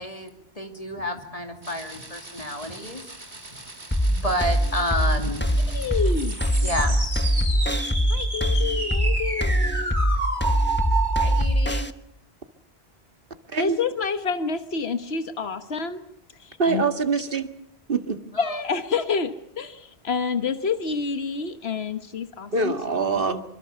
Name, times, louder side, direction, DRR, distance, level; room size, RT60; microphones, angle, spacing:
voice 1, 0.0-3.0 4.1-5.9 6.6-7.0 11.2-11.9 16.6-16.7 18.3-18.6, equal, 35° left, 4 dB, 2.8 m, -30 dB
sound 1, 1.6-11.4, right 3 dB, 45° right, 5.1 m, -32 dB
sound 2, 3.9-11.9, equal, 10° left, 1.0 m, -22 dB
voice 2, 5.7-6.4 8.1-9.9 13.6-16.0 16.4-16.8 18.4-22.7 23.3-23.4, left 5 dB, 85° left, 8 dB, 1.6 m, -28 dB
voice 3, 16.6-17.5 17.9-18.2 22.5-23.4, right 4 dB, 60° right, 8 dB, 2.1 m, -24 dB
26.0 x 24.5 x 6.9 m, 0.72 s
omnidirectional pair, 1.0 m